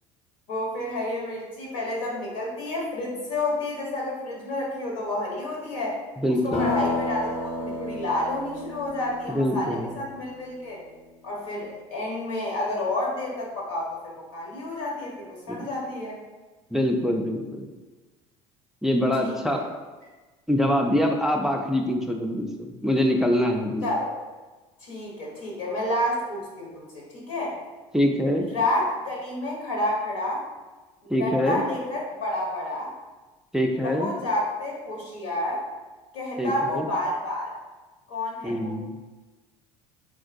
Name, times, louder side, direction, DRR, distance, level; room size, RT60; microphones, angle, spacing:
voice 1, 0.5-6.0 6.3-10.8 11.2-16.2 19.2-19.6 23.8-24.1 24.8-27.6 28.5-30.4 31.0-32.9 33.8-35.6 36.1-37.5 38.1-38.7, left 1 dB, 85° left, -3 dB, 1.1 m, -30 dB
voice 2, 6.2-6.7 9.3-9.9 15.5-15.7 16.7-17.7 18.8-19.6 20.5-23.9 27.9-28.5 31.1-31.6 33.5-34.1 36.4-36.9 38.4-38.9, left 1 dB, 5° right, 2 dB, 0.3 m, -24 dB
sound 1, 6.5-10.8, left 2 dB, 45° left, 0.6 m, -32 dB
3.7 x 2.5 x 2.5 m, 1.2 s
hypercardioid pair, 75°, 16 cm